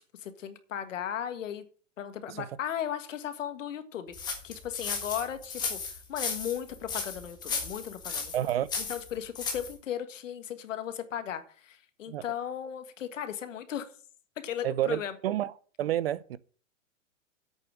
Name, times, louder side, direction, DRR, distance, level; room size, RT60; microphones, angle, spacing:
voice 1, 0.2-1.6 2.0-8.3 8.8-13.9 14.4-15.1, left 9 dB, 80° left, 1.7 m, -36 dB
sound 1, 4.1-9.7, left 5 dB, 10° left, 1.6 m, -35 dB
voice 2, 8.3-8.7 12.1-12.2 14.6-15.5 15.8-16.4, right 12 dB, 50° right, 0.6 m, -29 dB
8.3 x 6.9 x 7.3 m
supercardioid pair, 170°, 38 cm